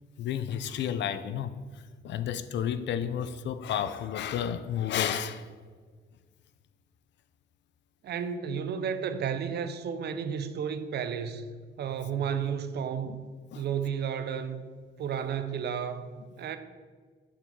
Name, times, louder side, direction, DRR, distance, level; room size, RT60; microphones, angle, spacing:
voice 1, 0.2-1.6 2.0-5.5 13.1-13.2 13.5-13.6, left 9 dB, 65° left, 13 dB, 0.4 m, -31 dB
voice 2, 8.0-11.5 11.8-13.2 13.5-14.6 15.0-16.6, right 7 dB, 55° right, 10 dB, 0.5 m, -32 dB
5.9 x 4.5 x 4.0 m, 1.6 s
cardioid pair, 90°, 20 cm